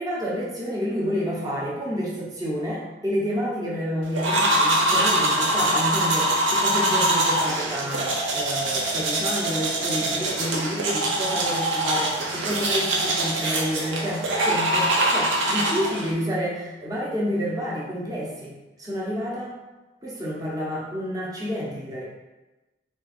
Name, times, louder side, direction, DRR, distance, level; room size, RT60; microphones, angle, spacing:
voice 1, 0.0-19.5 20.0-22.0, equal, 20° right, -6 dB, 0.8 m, -29 dB
sound 1, 4.2-16.1, right 1 dB, 85° right, 0.7 m, -23 dB
3.5 x 2.4 x 4.2 m, 1.1 s
head